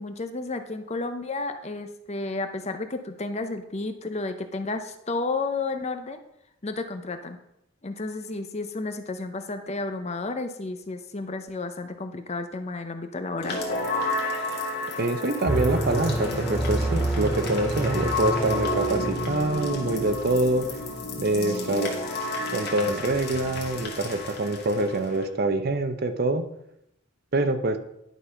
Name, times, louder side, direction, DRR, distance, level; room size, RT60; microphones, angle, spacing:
voice 1, 0.0-6.2 6.6-7.4 7.8-13.6, left 3 dB, 30° left, 7 dB, 0.6 m, -32 dB
sound 1, 13.4-25.2, left 2 dB, 50° left, 1.7 m, -32 dB
voice 2, 15.0-20.6 21.2-21.9 22.5-26.4 27.3-27.8, right 2 dB, 45° right, 8 dB, 0.7 m, -25 dB
sound 2, 15.5-19.5, right 1 dB, 5° right, 1.7 m, -28 dB
11.0 x 4.1 x 5.6 m, 0.82 s
head